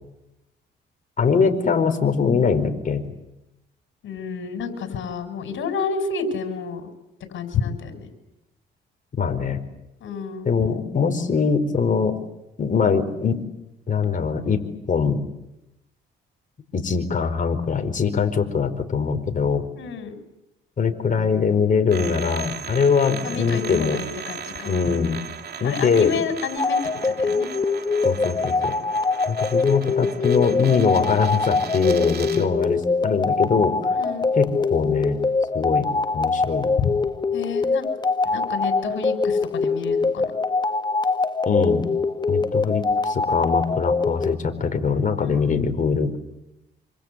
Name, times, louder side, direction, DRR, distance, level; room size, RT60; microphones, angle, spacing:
voice 1, 1.2-3.0 9.2-9.6 10.4-12.2 12.6-13.4 13.9-14.6 14.9-15.2 16.7-19.6 20.8-24.0 24.6-25.2 25.6-26.1 28.0-28.7 29.3-33.9 34.4-35.2 35.5-36.7 41.4-41.9 42.3-46.2, left 5 dB, 40° left, 6 dB, 4.6 m, -22 dB
voice 2, 4.0-6.8 7.3-8.1 10.0-10.5 19.8-20.1 23.2-24.7 25.6-26.8 27.0-27.5 33.9-34.3 36.8-36.9 37.3-37.9 38.3-40.3 45.2-45.8, left 5 dB, 75° left, 7 dB, 6.2 m, -29 dB
sound 1, 21.9-32.5, right 7 dB, 55° right, 2.7 m, -37 dB
sound 2, 26.6-44.4, left 4 dB, 20° left, 1.1 m, -23 dB
27.0 x 27.0 x 8.2 m, 0.91 s
cardioid pair, 90°, 20 cm